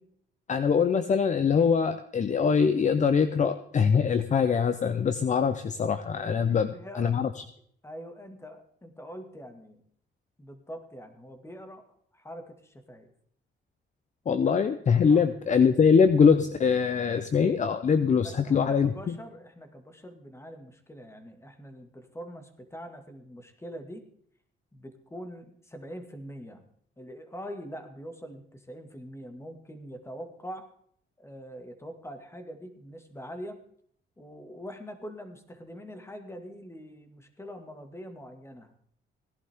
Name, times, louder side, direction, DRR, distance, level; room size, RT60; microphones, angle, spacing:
voice 1, 0.5-7.4 14.3-19.2, left 6 dB, 40° left, 10 dB, 0.7 m, -23 dB
voice 2, 6.5-7.1 7.8-9.8 10.4-11.9 12.1-13.1 15.1-15.3 18.2-24.1 24.7-26.6 27.0-30.7 31.2-33.6 34.2-38.7, equal, 15° left, 6 dB, 2.1 m, -43 dB
17.5 x 11.0 x 3.6 m, 0.63 s
cardioid pair, 90°, 20 cm